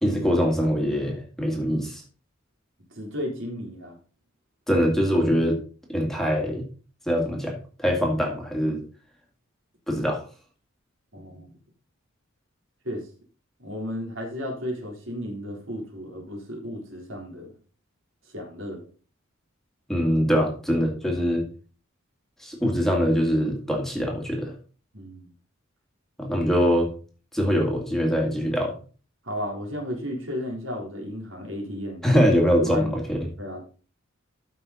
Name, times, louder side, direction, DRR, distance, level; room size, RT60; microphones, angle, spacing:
voice 1, 0.0-2.0 4.7-5.6 5.9-6.6 7.1-8.8 9.9-10.2 19.9-21.4 22.4-24.5 26.2-26.9 27.3-28.7 32.0-33.3, equal, ahead, 0 dB, 2.1 m, -23 dB
voice 2, 2.9-4.0 11.1-11.5 12.8-13.1 13.6-17.5 18.3-18.9 24.9-25.3 29.2-32.2 32.6-32.9 33.4-33.7, equal, 65° right, 0 dB, 3.9 m, -33 dB
13.5 x 5.7 x 4.2 m, 0.39 s
head